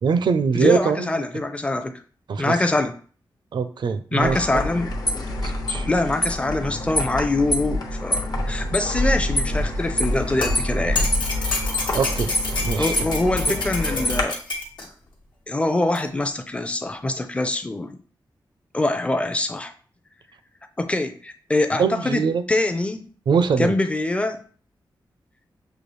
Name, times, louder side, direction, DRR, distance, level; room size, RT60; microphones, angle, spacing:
voice 1, 0.0-1.1 2.3-2.6 3.5-4.4 5.3-5.9 11.9-12.9 21.8-22.4 23.3-23.8, right 5 dB, 65° right, 11 dB, 0.4 m, -23 dB
voice 2, 0.5-1.9 2.4-2.9 4.1-4.9 5.9-11.1 12.8-14.4 15.5-18.0 18.7-19.7 20.8-23.1 23.6-24.4, left 2 dB, 15° left, 7 dB, 0.4 m, -24 dB
sound 1, 4.2-14.2, left 1 dB, 50° left, 0.9 m, -26 dB
sound 2, 10.0-14.9 16.0-16.1, left 2 dB, 70° left, 1.2 m, -29 dB
6.8 x 2.3 x 3.1 m, 0.42 s
wide cardioid pair, 140°, 8 cm